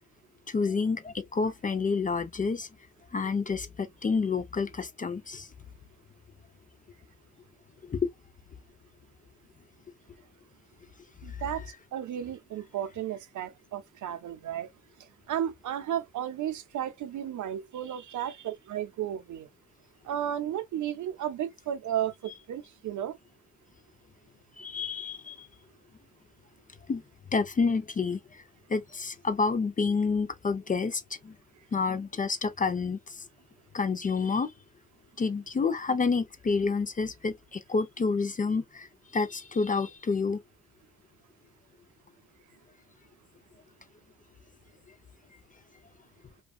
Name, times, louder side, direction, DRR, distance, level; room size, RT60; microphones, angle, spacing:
voice 1, 0.5-2.7 3.1-5.5 7.8-8.1 11.3-11.4 24.6-25.5 26.9-27.0 27.3-28.4 28.7-31.3 31.7-33.2 33.7-34.5 35.2-40.4, left 4 dB, 25° left, 0.4 m, -29 dB
voice 2, 11.2-14.7 15.3-19.5 20.0-22.1 22.5-23.2, right 10 dB, 65° right, 0.6 m, -33 dB
2.5 x 2.3 x 2.3 m
cardioid pair, 75°, 33 cm